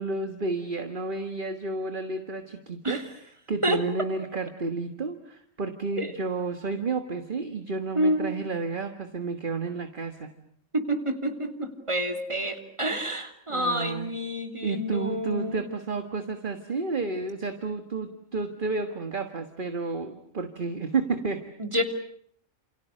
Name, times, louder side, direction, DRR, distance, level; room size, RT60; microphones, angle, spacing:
voice 1, 0.0-3.0 3.5-10.3 13.5-14.1 14.6-21.4, right 4 dB, 40° right, 7 dB, 1.8 m, -31 dB
voice 2, 7.9-8.3 10.7-15.6 21.6-21.8, equal, 25° right, 5 dB, 3.2 m, -28 dB
29.5 x 28.5 x 6.6 m, 0.63 s
omnidirectional pair, 1.3 m